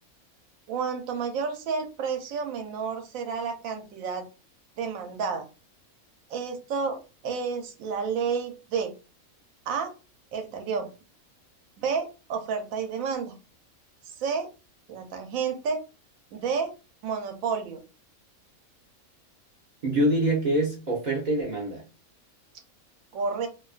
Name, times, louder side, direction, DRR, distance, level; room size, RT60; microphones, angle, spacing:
voice 1, 0.7-4.2 4.8-5.5 6.3-8.9 9.7-9.9 10.3-10.9 11.8-13.3 14.1-14.5 14.9-15.8 16.3-16.7 17.0-17.8 23.1-23.5, right 5 dB, 75° right, 6 dB, 1.0 m, -30 dB
voice 2, 19.8-21.8, right 1 dB, 50° right, -3 dB, 0.5 m, -25 dB
2.5 x 2.3 x 2.3 m, 0.32 s
omnidirectional pair, 1.5 m